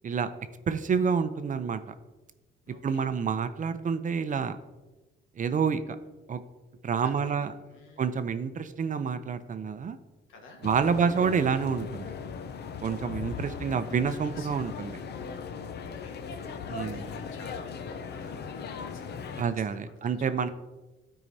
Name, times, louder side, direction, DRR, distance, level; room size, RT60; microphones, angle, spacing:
voice 1, 0.7-1.8 2.8-4.6 5.4-6.0 6.3-6.4 6.8-7.5 8.0-10.0 10.6-12.1 12.8-15.0 16.7-17.1 19.4-20.5, right 6 dB, 40° right, 10 dB, 0.5 m, -28 dB
voice 2, 2.7-3.2 7.0-8.2 10.3-11.1 11.3-11.5 12.9-13.5 14.3-14.5 15.7-20.5, left 3 dB, 85° left, 2 dB, 1.4 m, -52 dB
sound 1, 10.6-19.4, left 6 dB, 55° left, 0.6 m, -38 dB
12.0 x 4.8 x 2.7 m, 1.1 s
cardioid pair, 90°, 20 cm